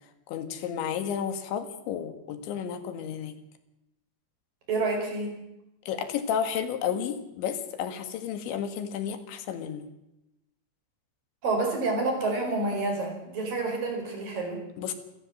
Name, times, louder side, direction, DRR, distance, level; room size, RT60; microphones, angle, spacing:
voice 1, 0.3-3.4 5.9-9.9 14.8-14.9, left 8 dB, 90° left, 9 dB, 4.1 m, -32 dB
voice 2, 4.7-5.3 11.4-14.6, right 3 dB, 50° right, 3 dB, 6.5 m, -28 dB
28.5 x 15.0 x 7.5 m, 0.92 s
omnidirectional pair, 5.1 m